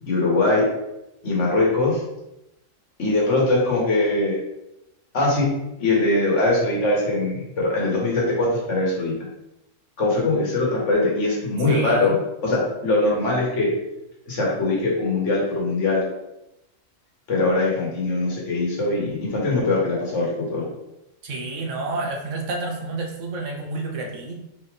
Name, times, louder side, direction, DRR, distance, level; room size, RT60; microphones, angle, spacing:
voice 1, 0.0-0.7 1.2-2.0 3.0-4.4 5.1-5.5 5.8-9.1 10.0-12.1 12.4-13.7 14.3-16.0 17.3-20.6, left 2 dB, 65° left, -3 dB, 1.6 m, -21 dB
voice 2, 11.7-12.1 21.2-24.3, right 3 dB, 70° right, 1 dB, 1.1 m, -29 dB
4.1 x 3.6 x 3.3 m, 0.90 s
omnidirectional pair, 1.4 m